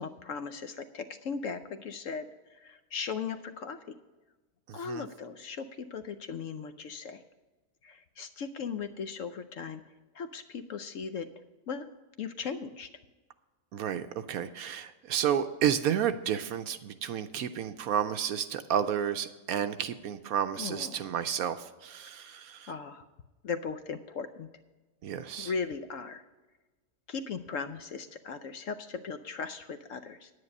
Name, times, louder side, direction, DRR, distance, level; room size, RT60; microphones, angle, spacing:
voice 1, 0.0-3.9 4.7-7.2 7.8-9.8 10.1-11.3 11.7-11.9 12.2-12.9 20.6-21.1 22.7-23.1 23.4-24.5 25.4-26.3 27.1-30.3, left 5 dB, 65° left, 9 dB, 0.9 m, -38 dB
voice 2, 4.7-5.0 13.7-22.7 25.0-25.5, right 9 dB, 70° right, 10 dB, 0.9 m, -31 dB
9.7 x 9.6 x 5.3 m, 1.2 s
omnidirectional pair, 1.7 m